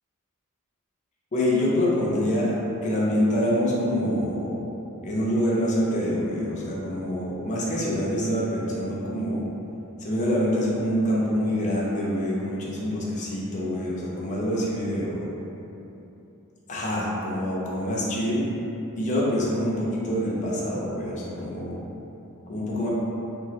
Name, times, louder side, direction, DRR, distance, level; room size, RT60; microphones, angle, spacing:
voice 1, 1.3-4.6 5.0-9.5 10.0-15.3 16.7-18.5 19.0-21.8 22.5-22.9, equal, 35° left, -5 dB, 0.5 m, -26 dB
2.7 x 2.3 x 3.0 m, 2.9 s
head